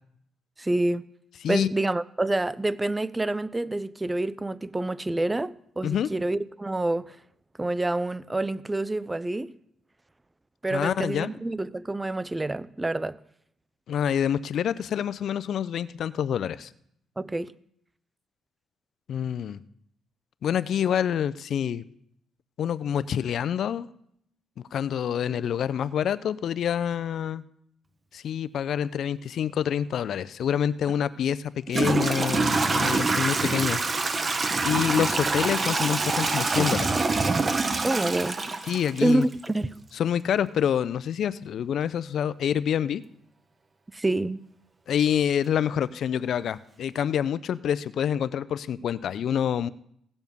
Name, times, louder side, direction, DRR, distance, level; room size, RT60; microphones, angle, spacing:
voice 1, 0.6-1.0 1.5-7.2 7.6-9.5 10.6-13.2 17.2-17.5 33.1-33.3 37.8-38.4 39.0-39.7 43.9-44.4, right 2 dB, 15° right, 0.5 m, -27 dB
voice 2, 10.7-11.3 13.9-16.7 19.1-19.6 20.4-21.8 22.6-23.9 24.7-27.4 28.1-33.8 34.6-37.1 38.7-39.3 40.0-43.0 44.9-49.7, left 9 dB, 65° left, 0.5 m, -27 dB
Toilet flush / Trickle dribble, 30.9-31.0 31.7-39.5, right 3 dB, 35° right, 1.2 m, -25 dB
17.0 x 7.1 x 5.4 m
cardioid pair, 90°, 0 cm